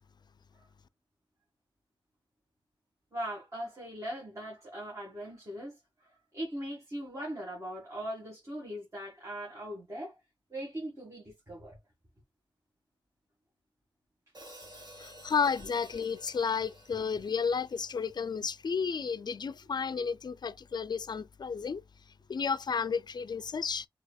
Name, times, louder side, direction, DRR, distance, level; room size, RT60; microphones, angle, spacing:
voice 1, 3.1-10.2 10.5-11.8, equal, 35° right, 1.9 m, -40 dB
Hi-hat, 14.3-18.5, right 1 dB, 50° right, 1.6 m, -53 dB
voice 2, 15.0-21.8 22.3-23.9, left 6 dB, 55° left, 0.4 m, -32 dB
4.6 x 2.9 x 2.3 m
wide cardioid pair, 70°, 9 cm